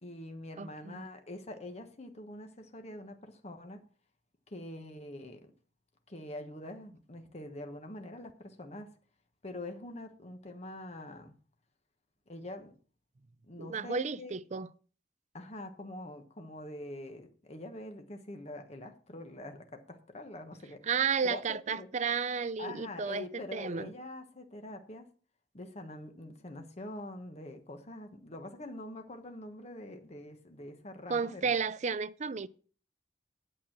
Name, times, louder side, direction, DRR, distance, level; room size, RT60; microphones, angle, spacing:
voice 1, 0.0-3.8 4.5-5.5 6.1-8.9 9.4-11.3 12.3-12.7 13.4-14.3 15.3-20.8 21.2-21.9 22.6-25.1 25.5-31.5, left 1 dB, 35° left, 1.2 m, -45 dB
voice 2, 0.6-1.1 13.6-14.7 20.8-23.3 23.5-23.9 31.1-32.5, right 5 dB, 40° right, 0.5 m, -32 dB
8.9 x 7.3 x 5.8 m
head